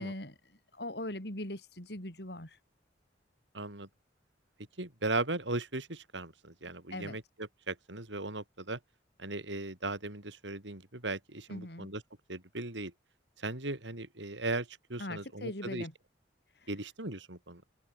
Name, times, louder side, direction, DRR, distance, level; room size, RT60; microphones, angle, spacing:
voice 1, 0.0-2.6 6.9-7.2 11.5-11.9 15.0-15.9 16.5-16.7, left 1 dB, 60° left, 5.4 m, -41 dB
voice 2, 3.5-3.9 4.8-7.2 7.7-8.8 9.2-12.0 12.3-12.9 13.4-15.9 16.7-17.6, right 2 dB, 80° right, 4.4 m, -37 dB
open air
head